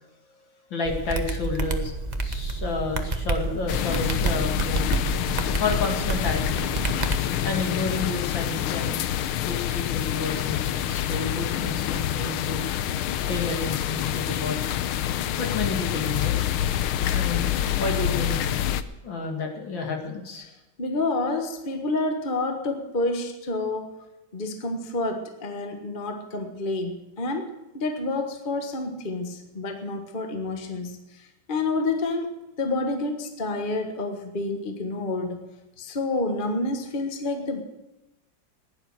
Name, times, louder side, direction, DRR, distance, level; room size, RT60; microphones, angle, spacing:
voice 1, 0.7-1.9 2.2-4.8 5.6-6.7 7.4-8.9 9.5-12.6 13.3-14.7 15.4-16.4 17.1-18.4 19.0-20.4, left 4 dB, 65° left, 2 dB, 3.0 m, -30 dB
sound 1, 0.8-7.2, right 3 dB, 30° right, 0.9 m, -29 dB
sound 2, 3.7-18.8, left 11 dB, 85° left, 1.6 m, -27 dB
voice 2, 20.8-24.0 24.3-32.3 32.6-35.5 35.8-37.6, left 2 dB, 25° left, 5 dB, 1.4 m, -29 dB
16.0 x 11.0 x 6.5 m, 1.0 s
omnidirectional pair, 2.3 m